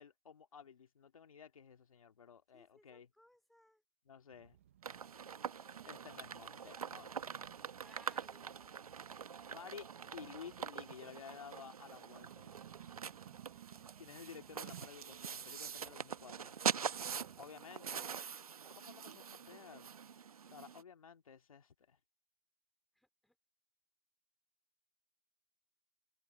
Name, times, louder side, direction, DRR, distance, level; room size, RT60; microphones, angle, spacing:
voice 1, 0.0-3.1 4.1-4.6 5.9-7.4 9.5-12.5 14.0-16.5 17.4-18.1 18.7-19.9 20.4-22.0, left 7 dB, 65° left, 2.3 m, -54 dB
voice 2, 2.5-3.8 7.8-8.8 17.3-17.6 22.9-23.4, left 1 dB, ahead, 2.5 m, -66 dB
sound 1, 4.3-17.5, right 11 dB, 20° right, 0.5 m, -60 dB
sound 2, 4.8-20.8, right 7 dB, 75° right, 1.3 m, -44 dB
hypercardioid pair, 170°, 19 cm